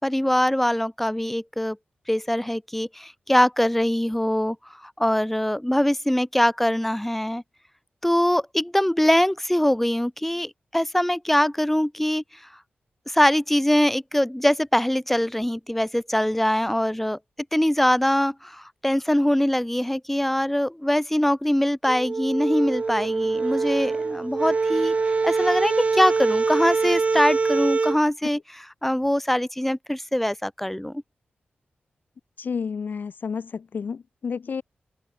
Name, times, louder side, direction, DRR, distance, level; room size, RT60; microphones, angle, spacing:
voice 1, 0.0-1.8 2.1-4.6 4.8-7.4 8.0-12.2 13.1-17.2 17.5-24.9 25.2-28.4 28.8-31.0, left 1 dB, 5° left, 5.4 m, -23 dB
sound 1, 21.8-28.0, right 4 dB, 40° right, 0.9 m, -24 dB
voice 2, 32.4-34.6, left 6 dB, 60° left, 2.5 m, -31 dB
wide cardioid pair, 140°, 4 cm